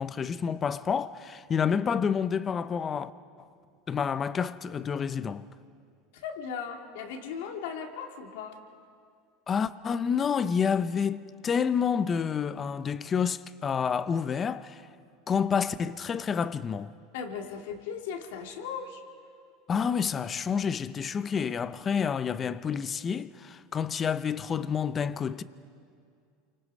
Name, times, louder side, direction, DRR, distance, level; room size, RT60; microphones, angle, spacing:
voice 1, 0.0-3.1 3.9-5.5 9.5-14.8 15.3-16.9 19.7-25.4, left 7 dB, 25° left, 0.6 m, -29 dB
voice 2, 6.1-8.6 17.1-19.0, left 6 dB, 80° left, 2.1 m, -37 dB
28.0 x 24.5 x 5.5 m
supercardioid pair, 140°, 0 cm